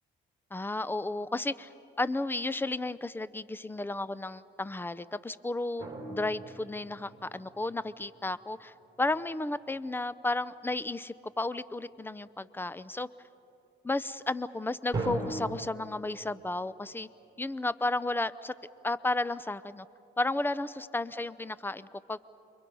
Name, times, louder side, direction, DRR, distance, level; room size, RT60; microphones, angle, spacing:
voice 1, 0.5-1.7 2.0-13.1 13.8-17.1 17.4-18.5 18.8-19.9 20.2-22.2, left 2 dB, 10° left, 16 dB, 0.6 m, -33 dB
sound 1, 5.8-7.9 14.9-15.6, right 2 dB, 20° right, 5.5 m, -37 dB
29.5 x 23.0 x 5.5 m, 2.9 s
cardioid pair, 90°, 20 cm